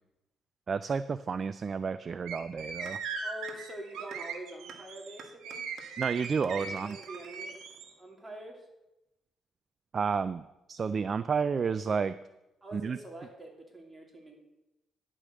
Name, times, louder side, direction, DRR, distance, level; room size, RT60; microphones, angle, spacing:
voice 1, 0.7-3.0 6.0-7.0 9.9-12.2 12.7-13.0, right 5 dB, 45° right, 14 dB, 0.3 m, -31 dB
sound 1, 2.3-7.9, right 5 dB, 85° right, 1.4 m, -39 dB
sound 2, 2.9-3.0 3.5-3.6 4.1-4.2 4.7-4.8 5.2-8.1, right 6 dB, 65° right, 1.5 m, -50 dB
voice 2, 3.2-5.7 6.6-7.6 8.0-8.7 12.6-14.4, right 1 dB, 15° right, 0 dB, 2.8 m, -45 dB
10.5 x 5.0 x 7.5 m, 0.94 s
cardioid pair, 90°, 0 cm